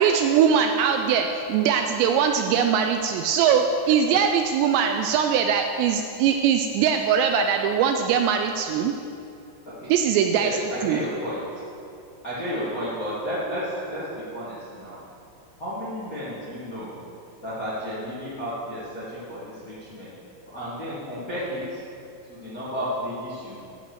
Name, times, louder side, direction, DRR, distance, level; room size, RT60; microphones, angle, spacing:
voice 1, 0.0-8.9 9.9-10.6 10.8-11.0, right 7 dB, 85° right, 5 dB, 2.5 m, -21 dB
voice 2, 10.4-11.6 12.2-15.0 15.6-16.9 17.4-20.1 20.5-21.8 22.3-23.5, equal, 40° left, -10 dB, 1.3 m, -32 dB
12.0 x 5.1 x 7.9 m, 2.6 s
omnidirectional pair, 5.3 m